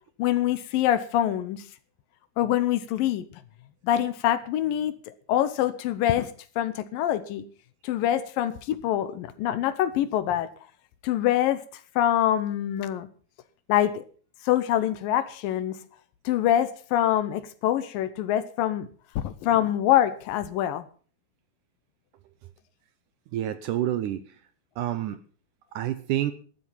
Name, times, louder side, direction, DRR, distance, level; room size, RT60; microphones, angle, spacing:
voice 1, 0.2-1.7 2.4-3.3 3.8-5.0 5.3-7.5 7.8-10.5 11.0-11.6 12.0-13.1 13.7-14.0 14.4-15.8 16.3-18.9 19.2-20.9, left 12 dB, 75° left, 2.5 m, -25 dB
voice 2, 23.3-24.4 24.8-25.2 25.7-26.3, right 12 dB, 75° right, 2.0 m, -28 dB
12.5 x 12.5 x 5.7 m
omnidirectional pair, 4.3 m